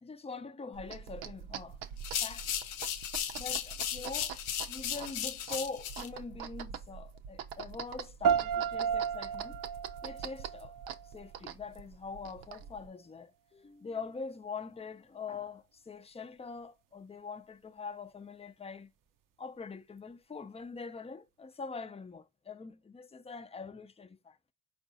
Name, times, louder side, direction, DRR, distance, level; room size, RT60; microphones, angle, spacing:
voice 1, 0.0-1.8 2.2-2.7 3.4-4.4 4.7-9.6 10.0-10.7 11.0-18.9 19.4-24.4, left 4 dB, 15° left, 0.5 m, -43 dB
sound 1, 0.7-12.9, right 8 dB, 80° right, 0.8 m, -45 dB
sound 2, 2.0-6.1, left 10 dB, 90° left, 0.8 m, -36 dB
sound 3, 8.2-11.2, right 7 dB, 45° right, 0.6 m, -32 dB
4.5 x 2.6 x 4.1 m
supercardioid pair, 70°, 46 cm